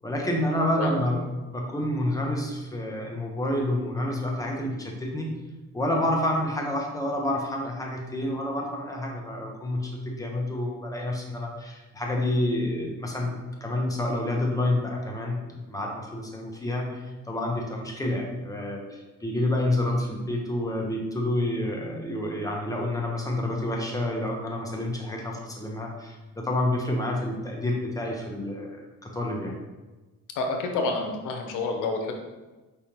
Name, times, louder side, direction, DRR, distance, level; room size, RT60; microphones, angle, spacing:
voice 1, 0.0-5.3 5.7-29.5, left 1 dB, 10° left, -1 dB, 1.0 m, -29 dB
voice 2, 30.4-32.1, left 3 dB, 90° left, 3 dB, 0.8 m, -28 dB
4.9 x 3.5 x 3.0 m, 1.2 s
cardioid pair, 90°, 30 cm